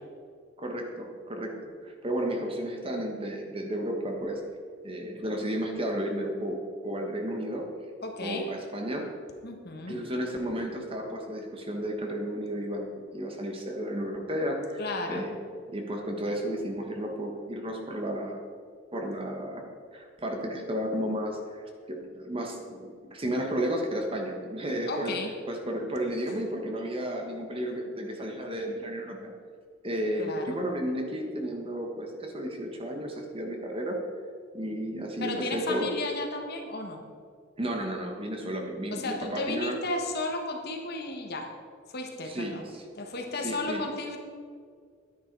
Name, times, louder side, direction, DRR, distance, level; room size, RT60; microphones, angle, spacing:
voice 1, 0.6-4.4 4.8-7.7 8.2-9.1 9.9-14.8 15.1-15.3 15.7-18.4 18.9-19.6 19.9-25.2 25.5-29.3 29.8-34.0 34.5-35.9 37.6-39.8 42.2-42.8 43.4-43.8, equal, 25° right, 2 dB, 1.3 m, -33 dB
voice 2, 8.0-8.5 9.4-10.0 14.8-15.3 24.9-25.4 30.2-30.6 35.2-37.0 38.9-41.5 41.9-42.6 43.0-44.2, left 2 dB, 50° left, 3 dB, 1.4 m, -34 dB
11.0 x 9.9 x 4.7 m, 2.1 s
head